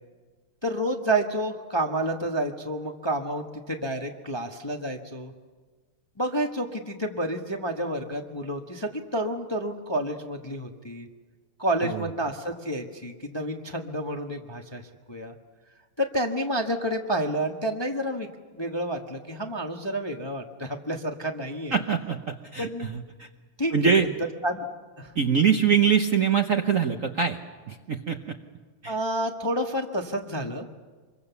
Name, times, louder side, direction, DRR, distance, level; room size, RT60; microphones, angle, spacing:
voice 1, 0.6-5.3 6.2-11.1 11.6-14.8 15.1-15.3 16.0-18.3 18.5-21.7 22.6-22.9 23.6-23.9 24.4-24.6 25.0-25.1 28.8-30.7, right 1 dB, 15° left, 3 dB, 0.9 m, -29 dB
voice 2, 21.7-23.3 23.7-24.1 25.1-27.4 27.7-28.4 28.8-29.0, right 7 dB, 50° right, 5 dB, 1.0 m, -24 dB
26.0 x 22.5 x 7.0 m, 1.4 s
omnidirectional pair, 2.4 m